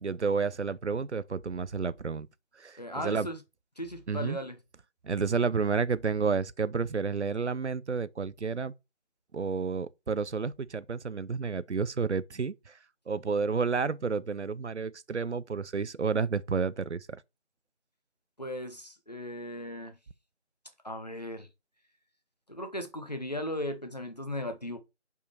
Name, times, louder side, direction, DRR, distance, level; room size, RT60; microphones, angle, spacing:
voice 1, 0.0-2.3 2.6-3.3 4.1-4.4 5.0-8.7 9.3-12.8 13.1-17.2, right 5 dB, 75° right, 0.6 m, -30 dB
voice 2, 2.8-3.4 3.8-4.6 18.4-19.9 20.8-21.5 22.5-24.8, left 1 dB, 35° left, 1.0 m, -37 dB
5.5 x 4.7 x 5.1 m
figure-of-eight pair, 175°, 35 cm